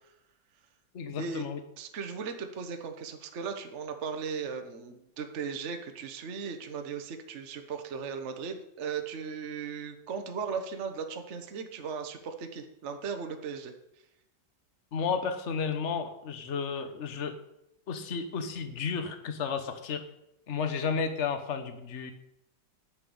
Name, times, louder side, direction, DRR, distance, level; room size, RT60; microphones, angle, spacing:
voice 1, 0.9-1.6 14.9-17.4 17.9-20.0 20.5-22.1, left 6 dB, 45° left, 8 dB, 1.3 m, -32 dB
voice 2, 1.8-13.7, right 6 dB, 45° right, 6 dB, 1.2 m, -37 dB
10.0 x 5.9 x 8.5 m, 0.83 s
omnidirectional pair, 1.9 m